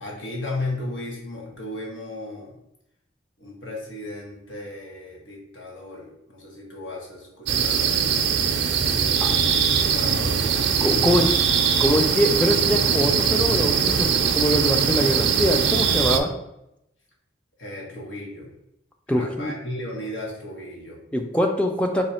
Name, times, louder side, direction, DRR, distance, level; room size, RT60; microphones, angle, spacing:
voice 1, 0.0-2.6 3.4-8.0 9.1-10.5 10.9-11.3 17.6-18.5 19.1-21.0, left 1 dB, 80° left, -3 dB, 1.4 m, -35 dB
sound 1, 7.5-16.2, right 7 dB, 65° right, 0.5 m, -21 dB
voice 2, 10.8-11.3 11.7-16.3 19.1-19.5 21.1-22.0, equal, 5° left, 3 dB, 0.4 m, -23 dB
4.1 x 2.7 x 4.3 m, 0.83 s
head